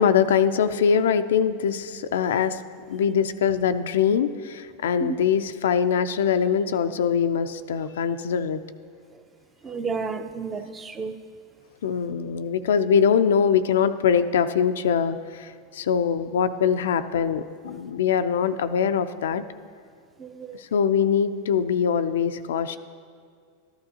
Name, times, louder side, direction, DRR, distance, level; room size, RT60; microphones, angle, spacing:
voice 1, 0.0-2.6 2.9-8.6 11.8-19.4 20.6-22.8, left 7 dB, 85° left, 10 dB, 0.4 m, -23 dB
voice 2, 9.6-11.2 20.2-20.6, right 5 dB, 20° right, 9 dB, 0.5 m, -31 dB
13.0 x 11.5 x 2.8 m, 2.2 s
supercardioid pair, 125°, 0 cm